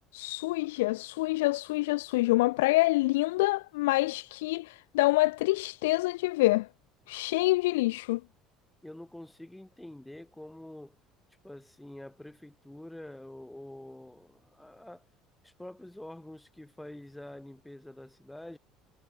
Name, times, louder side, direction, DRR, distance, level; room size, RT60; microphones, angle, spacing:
voice 1, 0.1-6.7 7.1-8.2, left 20 dB, 85° left, 0.4 m, -26 dB
voice 2, 8.8-11.0 11.4-15.1 15.4-18.6, left 1 dB, 5° left, 4.5 m, -46 dB
supercardioid pair, 85°, 0 cm